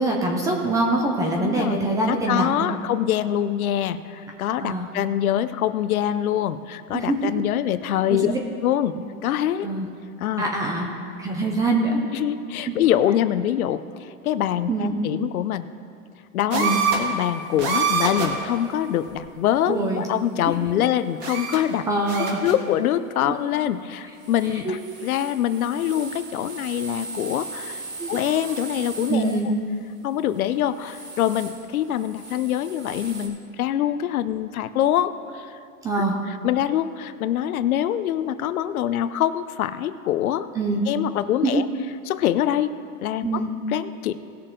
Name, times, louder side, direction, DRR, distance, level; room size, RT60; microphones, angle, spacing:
voice 1, 0.0-2.7 4.6-4.9 6.9-7.3 8.1-8.4 8.9-9.0 9.6-9.9 10.4-10.9 11.2-12.0 12.7-12.8 14.7-14.9 16.5-16.8 19.7-20.1 20.5-20.6 21.9-22.4 23.2-23.4 24.5-24.8 28.0-28.1 29.1-29.5 35.8-36.1 40.5-40.8 41.4-41.6 43.2-43.5, right 2 dB, 10° right, 0 dB, 0.4 m, -24 dB
voice 2, 1.4-1.8 2.1-8.3 8.6-9.0 9.2-9.7 10.2-10.4 12.1-15.7 16.3-21.9 22.4-27.8 28.1-29.4 30.0-35.5 36.4-40.5 40.9-41.7 42.1-42.7 43.0-43.4 43.7-44.2, left 11 dB, 70° left, 13 dB, 0.7 m, -24 dB
sound 1, 16.5-17.2 17.6-18.4 19.1-19.2 21.2-21.8 22.1-22.7 24.2-24.5 24.8-29.4 30.8-31.6 32.0-33.3, right 5 dB, 35° right, 1.7 m, -30 dB
18.5 x 6.7 x 3.8 m, 2.4 s
hypercardioid pair, 140°, 44 cm